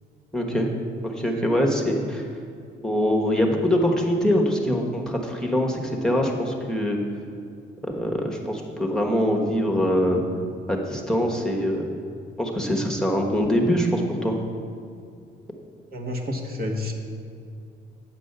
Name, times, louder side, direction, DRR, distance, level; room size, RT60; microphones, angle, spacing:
voice 1, 0.3-0.7 1.0-2.3 2.8-7.0 7.8-10.2 10.7-11.9 12.4-14.5, equal, 5° left, 0 dB, 1.2 m, -23 dB
voice 2, 15.9-16.9, left 1 dB, 50° right, 1 dB, 1.3 m, -29 dB
8.9 x 5.3 x 6.7 m, 2.4 s
cardioid pair, 90°, 20 cm